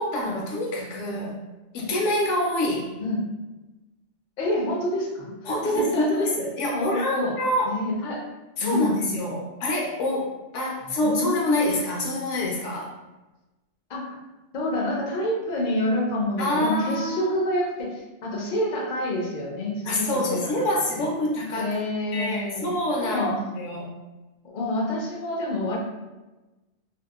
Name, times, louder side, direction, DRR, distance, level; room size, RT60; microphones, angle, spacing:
voice 1, 0.0-1.4 1.7-2.9 5.5-7.8 8.6-12.9 16.4-17.3 19.8-21.8 22.1-23.9, left 1 dB, 75° left, -2 dB, 0.9 m, -26 dB
voice 2, 4.4-6.3 6.7-7.4 7.7-8.2 8.6-8.9 10.8-11.5 13.9-14.2 14.5-20.5 21.0-21.1 21.6-23.4 24.4-25.8, left 1 dB, 55° left, -2 dB, 0.6 m, -28 dB
2.7 x 2.0 x 2.3 m, 1.1 s
omnidirectional pair, 1.3 m